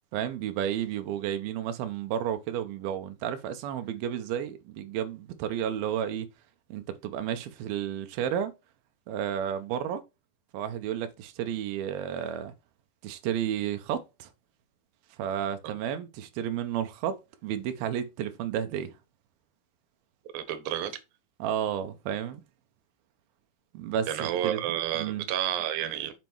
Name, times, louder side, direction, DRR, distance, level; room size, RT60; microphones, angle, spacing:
voice 1, 0.1-6.3 6.7-8.5 9.1-10.0 10.5-12.5 13.0-14.3 15.2-18.9 21.4-22.4 23.7-24.6 24.9-25.3, right 9 dB, 90° right, 2.7 m, -32 dB
voice 2, 20.3-20.9 24.1-26.1, right 11 dB, 65° right, 2.4 m, -30 dB
7.4 x 5.2 x 4.6 m
omnidirectional pair, 4.1 m